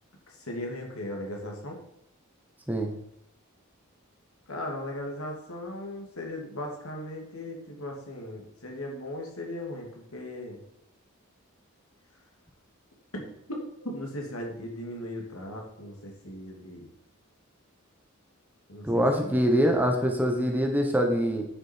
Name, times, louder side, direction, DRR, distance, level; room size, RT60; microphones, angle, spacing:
voice 1, 0.3-1.8 4.5-10.6 13.1-16.9 18.7-19.5, left 1 dB, 90° left, 1 dB, 2.5 m, -38 dB
voice 2, 18.8-21.4, equal, 10° right, 3 dB, 1.2 m, -24 dB
9.5 x 6.5 x 4.6 m, 0.79 s
head